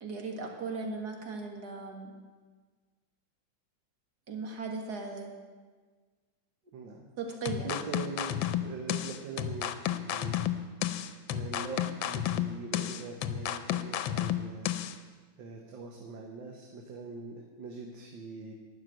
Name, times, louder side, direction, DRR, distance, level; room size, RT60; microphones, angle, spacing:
voice 1, 0.0-2.1 4.3-5.3 7.2-7.7, right 4 dB, 55° right, 2 dB, 2.2 m, -37 dB
voice 2, 6.7-7.1 7.6-10.4 11.3-14.7 15.4-18.5, right 4 dB, 75° right, 2 dB, 1.8 m, -42 dB
sound 1, 7.5-15.0, left 11 dB, 85° left, 1.4 m, -32 dB
12.0 x 6.6 x 9.2 m, 1.4 s
omnidirectional pair, 2.1 m